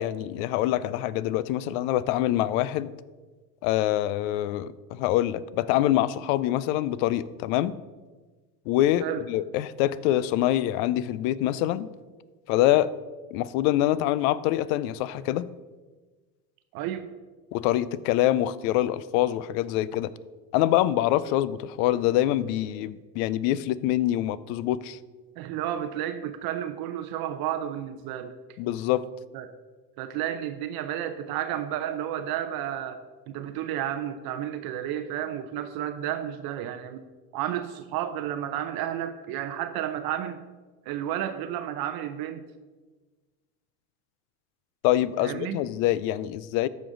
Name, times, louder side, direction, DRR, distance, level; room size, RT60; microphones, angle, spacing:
voice 1, 0.0-2.9 3.6-7.7 8.7-11.9 12.5-12.9 13.3-15.5 17.5-20.1 20.5-25.0 28.6-29.0 44.8-46.7, left 13 dB, 65° left, 18 dB, 0.6 m, -25 dB
voice 2, 16.7-17.1 25.4-28.6 29.3-29.5 30.0-37.0 37.3-40.4 40.9-42.4 45.2-45.6, right 11 dB, 55° right, 8 dB, 0.7 m, -32 dB
14.0 x 5.2 x 3.8 m, 1.3 s
supercardioid pair, 100°, 45 cm